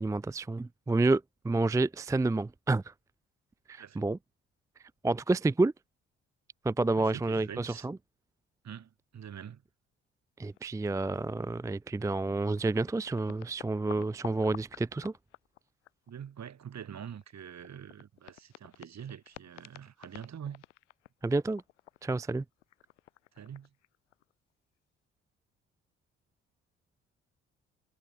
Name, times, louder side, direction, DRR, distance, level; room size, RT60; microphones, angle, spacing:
voice 1, 0.0-2.9 3.7-4.2 5.0-5.7 6.6-8.0 10.4-15.1 21.2-21.6 22.0-22.4, right 2 dB, 10° right, 0.5 m, -29 dB
voice 2, 6.9-7.9 8.6-9.6 16.1-20.6 23.3-23.7, right 8 dB, 50° right, 4.5 m, -45 dB
sound 1, 10.5-10.9 11.2-11.3 12.2-12.3 12.5-16.3 16.6-24.3, left 14 dB, 85° left, 1.9 m, -51 dB
figure-of-eight pair, 45°, 35 cm